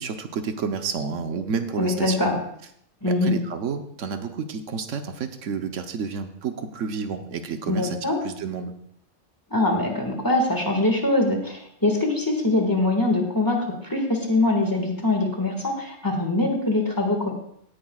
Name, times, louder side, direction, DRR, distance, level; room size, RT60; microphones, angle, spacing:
voice 1, 0.0-2.4 3.0-8.0 8.2-8.7, right 6 dB, 90° right, 7 dB, 1.2 m, -30 dB
voice 2, 1.8-2.3 3.0-3.4 7.7-8.2 9.5-17.3, left 2 dB, 15° left, 1 dB, 1.8 m, -23 dB
17.0 x 10.0 x 2.4 m, 0.69 s
omnidirectional pair, 1.2 m